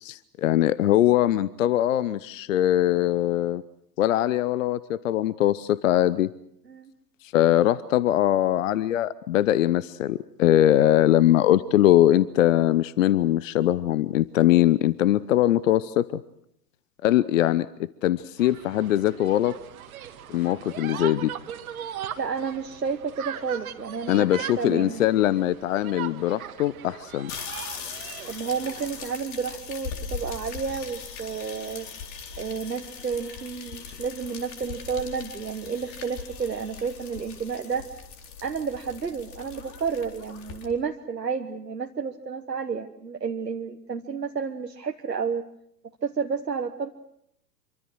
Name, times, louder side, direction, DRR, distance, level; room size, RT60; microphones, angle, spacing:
voice 1, 0.0-3.6 4.0-6.3 7.3-16.2 17.0-17.7 18.0-19.5 20.3-21.3 24.1-27.3, left 13 dB, 50° left, 19 dB, 0.9 m, -21 dB
sound 1, 18.4-29.2, right 10 dB, 60° right, 1.8 m, -39 dB
voice 2, 22.2-24.3 24.6-25.0 28.3-31.9 32.4-37.9 38.4-45.4 46.0-46.9, right 5 dB, 80° right, 4 dB, 1.4 m, -31 dB
sound 2, 27.3-40.7, left 6 dB, 35° left, 4.1 m, -40 dB
26.5 x 24.0 x 6.4 m, 0.73 s
figure-of-eight pair, 95°, 48 cm